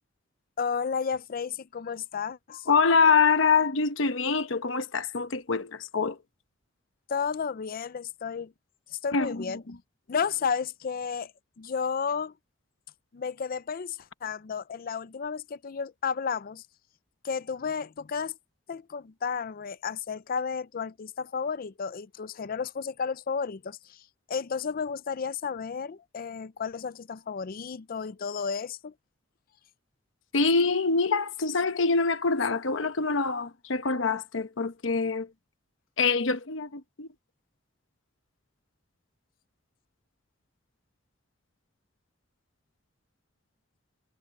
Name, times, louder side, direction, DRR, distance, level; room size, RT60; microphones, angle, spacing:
voice 1, 0.6-2.7 7.1-8.5 8.9-9.6 10.1-11.3 11.6-12.3 13.1-16.6 17.2-18.3 18.7-23.8 24.3-28.9, left 6 dB, 50° left, 0.5 m, -32 dB
voice 2, 2.7-6.2 9.1-9.8 30.3-35.3 36.0-37.1, left 4 dB, 80° left, 0.9 m, -25 dB
head